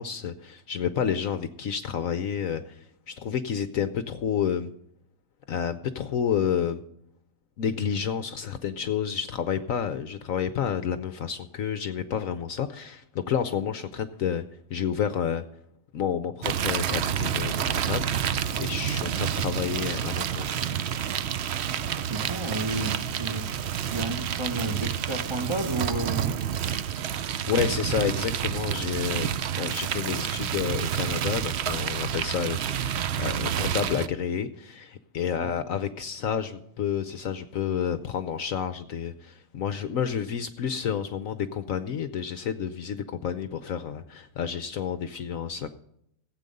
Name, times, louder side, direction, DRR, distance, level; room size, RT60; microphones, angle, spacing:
voice 1, 0.0-4.7 5.5-6.8 7.6-14.4 14.7-15.4 15.9-20.6 27.5-29.3 29.6-45.7, left 8 dB, 65° left, 11 dB, 0.9 m, -30 dB
sound 1, 16.4-34.1, right 9 dB, 90° right, 0.5 m, -29 dB
voice 2, 21.7-26.4 27.4-27.9 35.3-35.6, right 2 dB, 25° right, 2 dB, 0.7 m, -33 dB
16.0 x 8.4 x 5.3 m, 0.76 s
omnidirectional pair, 1.8 m